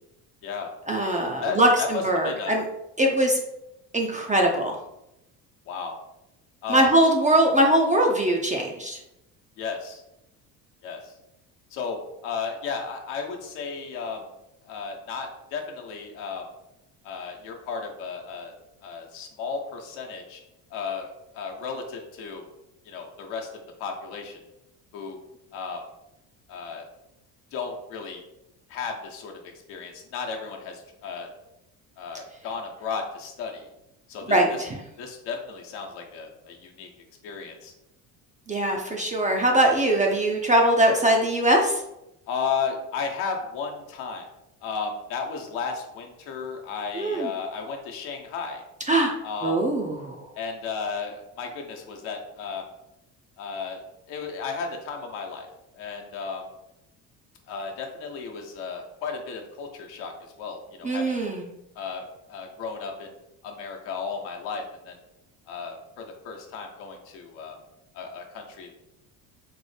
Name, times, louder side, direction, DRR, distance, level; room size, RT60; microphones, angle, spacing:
voice 1, 0.9-2.6 3.0-3.4 3.9-4.8 6.7-9.0 34.3-34.8 38.5-41.8 47.0-47.3 48.9-49.1 49.4-50.2 60.8-61.5, right 1 dB, 15° right, 1 dB, 0.4 m, -21 dB
voice 2, 1.4-2.6 5.7-5.9 6.6-6.9 9.6-10.0 10.8-11.1 11.7-14.2 14.6-16.5 17.0-18.5 18.8-20.4 20.7-22.4 22.8-23.5 23.8-24.4 24.9-25.2 25.5-25.8 26.5-26.8 27.5-28.2 28.7-29.4 29.7-31.3 32.0-33.7 34.1-34.6 35.0-36.9 37.2-37.7 42.3-44.3 44.6-48.6 49.2-49.6 50.3-52.7 53.4-53.8 54.1-55.5 55.8-56.5 57.5-60.1 60.4-61.2 61.8-63.1 63.4-65.0 65.5-67.6 67.9-68.7, left 5 dB, 75° left, 1 dB, 0.9 m, -34 dB
4.4 x 2.0 x 3.2 m, 0.88 s
hypercardioid pair, 65°, 50 cm